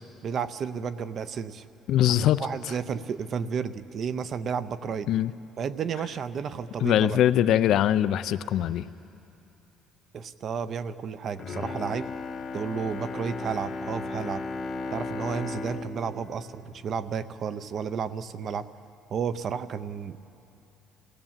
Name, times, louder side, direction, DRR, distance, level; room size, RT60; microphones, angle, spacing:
voice 1, 0.2-1.6 2.1-5.1 5.6-7.2 10.1-12.1 12.5-14.4 14.9-18.7 19.1-20.2, right 6 dB, 40° right, 14 dB, 0.6 m, -32 dB
voice 2, 1.9-2.5 5.1-5.3 6.8-8.9, left 11 dB, 60° left, 12 dB, 0.4 m, -22 dB
Bowed string instrument, 11.3-17.6 18.0-18.1, left 3 dB, 35° left, 0.9 m, -36 dB
26.0 x 17.0 x 7.4 m, 2.9 s
cardioid pair, 155°, 0 cm